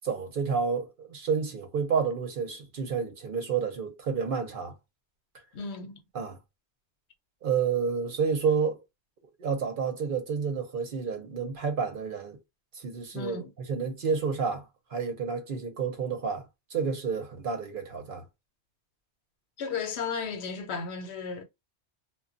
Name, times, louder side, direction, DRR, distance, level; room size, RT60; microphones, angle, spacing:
voice 1, 0.0-4.7 6.1-6.4 7.4-8.8 9.4-12.4 12.8-14.7 14.9-16.4 16.7-18.2, right 6 dB, 55° right, 0.8 m, -30 dB
voice 2, 5.5-6.0 13.1-13.5 19.6-21.4, left 5 dB, 75° left, 0.9 m, -34 dB
2.2 x 2.0 x 3.7 m
omnidirectional pair, 1.1 m